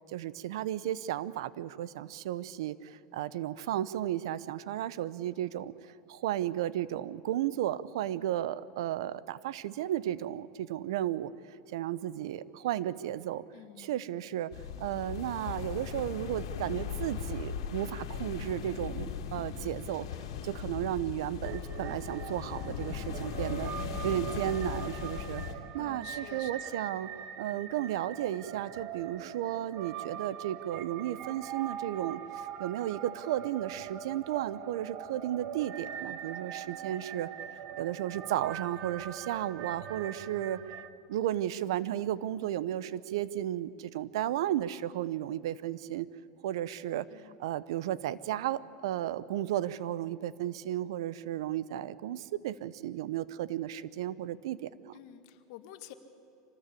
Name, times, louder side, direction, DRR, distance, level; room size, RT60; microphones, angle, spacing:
voice 1, 0.1-11.3 11.7-13.4 13.8-14.5 14.8-20.1 20.4-23.7 24.0-25.4 25.7-27.1 27.4-32.2 32.6-37.3 37.8-40.6 41.1-46.1 46.4-55.0, right 12 dB, 80° right, 18 dB, 0.8 m, -34 dB
voice 2, 13.5-14.3 25.8-26.8 47.1-47.4 54.9-55.9, left 12 dB, 65° left, 8 dB, 1.8 m, -50 dB
sound 1, 14.5-25.5, left 8 dB, 80° left, 2.4 m, -38 dB
sound 2, 21.4-40.9, right 9 dB, 55° right, 1.5 m, -42 dB
25.5 x 18.5 x 8.4 m, 2.8 s
supercardioid pair, 135°, 3 cm